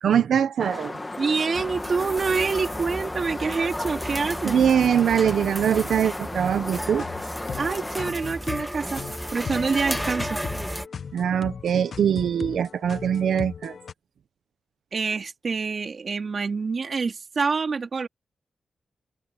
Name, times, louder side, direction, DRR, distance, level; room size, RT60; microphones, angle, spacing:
voice 1, 0.0-1.0 4.4-7.1 11.1-13.8, right 8 dB, 85° right, 0.8 m, -22 dB
sound 1, 0.6-8.1, left 2 dB, 15° left, 1.9 m, -35 dB
voice 2, 1.2-4.6 7.6-9.0 9.3-10.4 14.9-18.1, right 4 dB, 40° right, 3.5 m, -26 dB
sound 2, 1.5-10.9, equal, 5° right, 0.7 m, -34 dB
sound 3, 6.7-13.9, left 6 dB, 55° left, 1.0 m, -38 dB
open air
wide cardioid pair, 150°, 0 cm